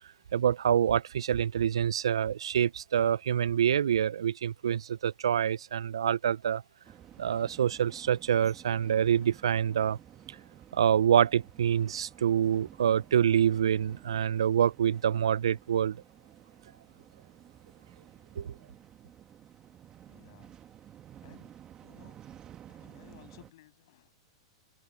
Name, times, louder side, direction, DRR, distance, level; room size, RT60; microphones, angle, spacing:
voice 1, 0.3-6.6 7.2-10.0 10.7-16.0 18.4-18.5, right 9 dB, 85° right, 0.4 m, -26 dB
sound 1, 6.8-23.5, right 10 dB, 30° right, 1.7 m, -53 dB
voice 2, 20.1-20.5 21.2-21.5 21.8-22.2 22.7-24.1, left 15 dB, 65° left, 7.4 m, -57 dB
hypercardioid pair, 120°, 3 cm